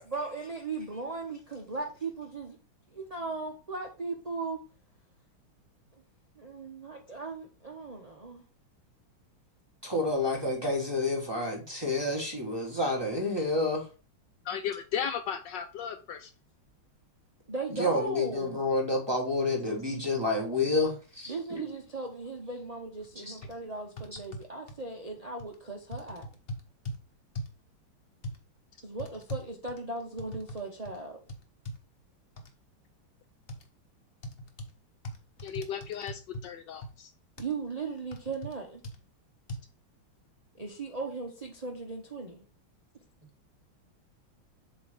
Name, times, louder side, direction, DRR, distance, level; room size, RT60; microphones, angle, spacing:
voice 1, 0.0-2.6 2.9-4.6 5.9-6.0 6.4-8.4 17.5-18.6 21.3-26.3 28.8-31.2 37.4-38.8 40.5-42.4, right 3 dB, 65° right, 0.3 m, -37 dB
voice 2, 9.8-13.8 17.8-21.6 23.3-23.4, left 2 dB, 15° right, 1.0 m, -29 dB
voice 3, 14.5-16.3 35.4-37.1, left 8 dB, 70° left, 1.1 m, -35 dB
sound 1, 23.0-23.1 23.4-23.5 24.0-24.8 25.4-25.6 25.9-27.0 27.3-27.6 28.2-28.4 29.0-30.6 30.8-31.0 31.3-31.8 32.4-32.5 33.5-33.6 34.2-34.7 35.0-36.5 36.8-36.9 37.4-37.5 38.1-38.5 38.8-39.0 39.5-39.6, equal, 50° left, 0.7 m, -40 dB
7.7 x 3.0 x 5.1 m
omnidirectional pair, 2.3 m